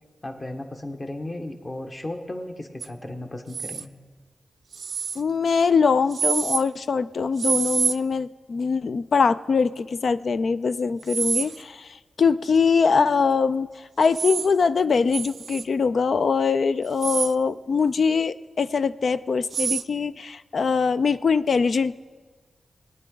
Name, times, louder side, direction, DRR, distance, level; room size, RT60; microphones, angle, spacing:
voice 1, 0.2-3.9, left 1 dB, 30° left, 4 dB, 1.3 m, -35 dB
sound 1, 2.8-2.9 3.5-3.8 4.7-5.2 6.1-6.6 7.4-8.0 11.0-11.6 14.0-14.5 15.1-15.6 16.8-17.3 19.5-19.8, right 5 dB, 75° right, 0.4 m, -26 dB
voice 2, 5.2-11.9 12.2-13.7 14.0-21.9, left 5 dB, 65° left, 14 dB, 0.3 m, -22 dB
19.5 x 9.4 x 3.8 m, 1.4 s
cardioid pair, 70°, 0 cm